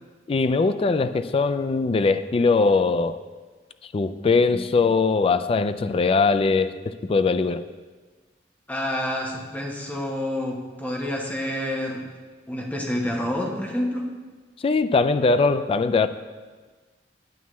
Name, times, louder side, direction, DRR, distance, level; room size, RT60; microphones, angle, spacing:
voice 1, 0.3-3.2 3.9-6.7 7.0-7.6 14.6-16.1, left 4 dB, 35° left, 11 dB, 0.3 m, -21 dB
voice 2, 8.7-12.0 12.5-14.1, left 1 dB, 10° left, -1 dB, 1.0 m, -28 dB
9.3 x 8.2 x 3.1 m, 1.4 s
head